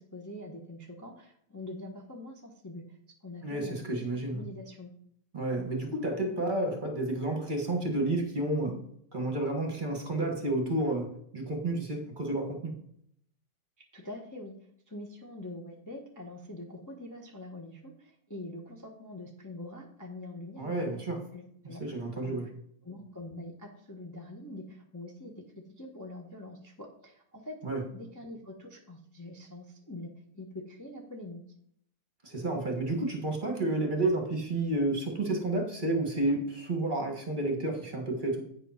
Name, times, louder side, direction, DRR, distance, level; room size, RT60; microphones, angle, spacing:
voice 1, 0.1-3.0 3.2-4.9 13.9-14.5 14.9-20.9 21.3-22.4 22.8-25.4 25.7-27.6 27.9-30.1 30.3-31.4, left 1 dB, 15° left, 1.0 m, -44 dB
voice 2, 3.4-4.4 5.3-8.8 9.1-12.7 20.6-21.2 21.6-22.5 27.6-27.8 32.2-38.5, right 2 dB, 30° right, 1.6 m, -31 dB
8.8 x 5.1 x 5.7 m
omnidirectional pair, 1.7 m